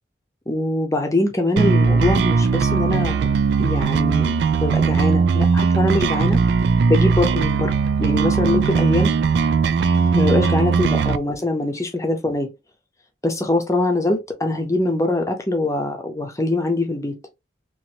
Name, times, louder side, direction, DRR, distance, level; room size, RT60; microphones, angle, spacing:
voice 1, 0.5-3.3 3.6-4.3 4.6-6.4 6.9-7.7 8.0-9.1 10.1-12.5 13.2-17.1, left 2 dB, 15° left, 0.7 m, -22 dB
sound 1, 1.6-11.2, right 5 dB, 70° right, 0.3 m, -19 dB
3.0 x 2.6 x 2.7 m
head